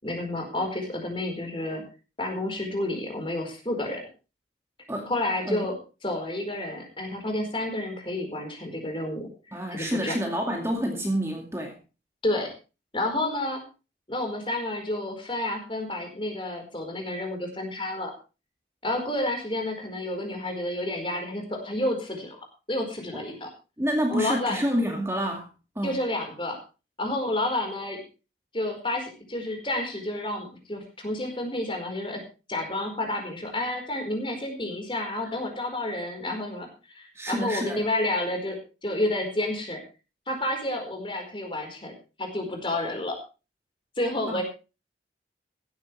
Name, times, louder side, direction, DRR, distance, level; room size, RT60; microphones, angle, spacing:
voice 1, 0.0-1.8 2.2-4.0 5.1-5.7 6.0-10.2 12.2-12.5 12.9-13.6 14.1-18.1 18.8-22.4 22.7-23.5 24.1-24.6 25.8-26.6 27.0-28.0 28.5-32.2 32.5-38.6 38.8-39.8 40.3-43.2 44.0-44.4, left 1 dB, 30° left, 3 dB, 4.7 m, -30 dB
voice 2, 9.5-11.8 23.1-23.2 23.8-25.5 25.8-26.0 37.1-37.8 44.3-44.4, equal, 15° right, 1 dB, 2.3 m, -28 dB
16.0 x 13.0 x 3.4 m, 0.32 s
head